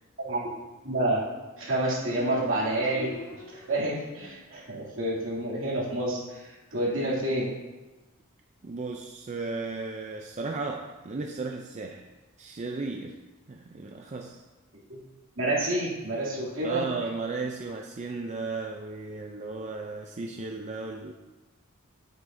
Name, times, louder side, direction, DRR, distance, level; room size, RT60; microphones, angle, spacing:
voice 1, 0.2-0.6 0.8-1.2 1.6-3.2 3.5-7.5 14.9-15.0 15.4-16.9, right 1 dB, 70° right, -5 dB, 2.7 m, -29 dB
Motorcycle, 1.0-4.7, left 1 dB, 75° left, 1.7 m, -45 dB
voice 2, 8.6-12.1 12.4-13.2 13.5-14.4 16.6-21.1, right 3 dB, 35° right, 2 dB, 0.4 m, -35 dB
9.5 x 7.8 x 2.7 m, 1.1 s
head